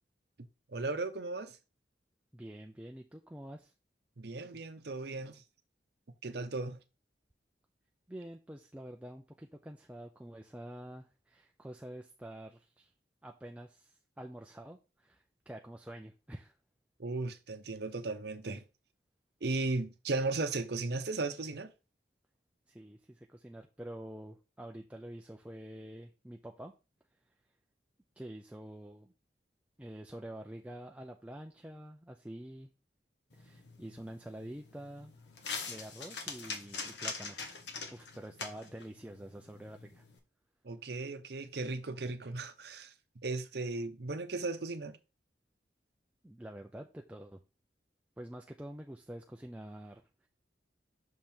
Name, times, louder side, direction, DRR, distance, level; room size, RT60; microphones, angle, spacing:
voice 1, 0.7-1.6 4.2-5.4 6.2-6.8 17.0-18.6 19.4-21.7 40.6-42.9 43.2-45.0, right 3 dB, 65° right, 0.7 m, -36 dB
voice 2, 2.3-3.7 8.1-12.9 13.2-16.6 22.7-26.7 28.2-29.1 29.8-32.7 33.3-35.1 35.7-37.4 37.9-40.0 46.2-47.4 48.2-50.0, right 1 dB, 5° right, 0.4 m, -47 dB
sound 1, 33.3-40.2, left 4 dB, 75° left, 1.2 m, -44 dB
6.3 x 3.6 x 4.4 m
head